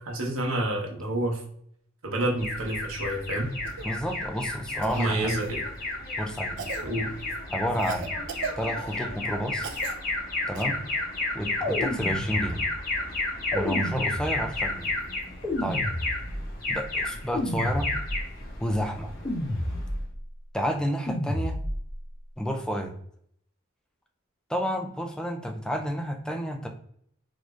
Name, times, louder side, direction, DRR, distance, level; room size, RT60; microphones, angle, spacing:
voice 1, 0.0-1.4 2.0-3.5 4.9-5.6 6.8-7.1, right 1 dB, 80° right, -1 dB, 1.1 m, -28 dB
Alarm, 2.4-20.0, left 2 dB, 45° left, 1.3 m, -32 dB
Cough, 3.6-3.9 4.8-5.5 6.6-6.9 7.8-9.0 9.6-10.0 10.5-10.6 12.5-12.6, right 5 dB, 60° right, 0.5 m, -37 dB
voice 2, 3.8-5.3 6.2-6.6 7.5-8.1 8.6-9.7 10.5-10.8 11.3-12.7 13.5-14.9 15.6-15.8 16.7-17.9 18.6-19.1 20.5-21.6 22.4-22.9 24.5-26.7, equal, 5° left, 4 dB, 0.4 m, -30 dB
sound 1, 11.6-12.8 13.5-14.7 15.4-16.6 17.3-18.4 19.2-20.2 21.1-22.0, left 1 dB, 20° left, 1.2 m, -31 dB
4.0 x 3.1 x 2.4 m, 0.67 s
head